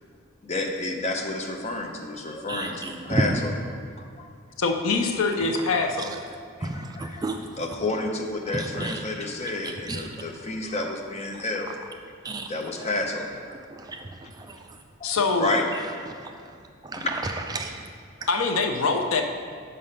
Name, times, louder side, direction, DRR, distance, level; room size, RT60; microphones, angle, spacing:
voice 1, 0.4-3.5 4.0-4.3 6.6-7.2 7.6-11.8 12.5-13.4 15.0-15.1 15.4-15.7 16.4-16.5 17.0-17.1, left 2 dB, 30° left, 3 dB, 0.6 m, -30 dB
voice 2, 2.5-3.4 5.5-6.2 6.6-7.6 8.5-9.0 9.6-10.1 11.4-11.5 12.2-12.5 12.8-12.9 13.5-14.8 15.7-17.9 18.2-18.3, right 2 dB, 20° right, 4 dB, 0.3 m, -33 dB
voice 3, 4.6-6.1 15.0-15.5 18.3-19.2, left 4 dB, 75° left, 5 dB, 0.6 m, -24 dB
5.7 x 5.3 x 5.2 m, 2.1 s
head